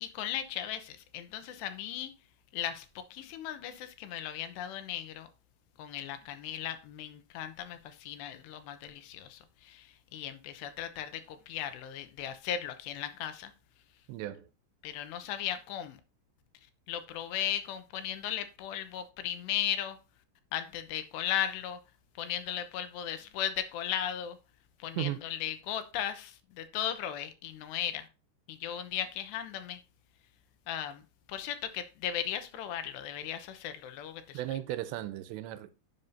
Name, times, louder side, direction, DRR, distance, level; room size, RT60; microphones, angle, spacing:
voice 1, 0.0-2.1 2.5-5.3 5.8-13.5 14.8-16.0 16.9-20.0 20.5-21.8 22.2-24.4 24.8-28.1 28.5-29.8 30.7-31.0 31.3-34.4, left 10 dB, 85° left, 3.0 m, -36 dB
voice 2, 14.1-14.5 25.0-25.2 34.3-35.7, right 14 dB, 85° right, 2.9 m, -36 dB
11.0 x 7.3 x 2.7 m
omnidirectional pair, 5.0 m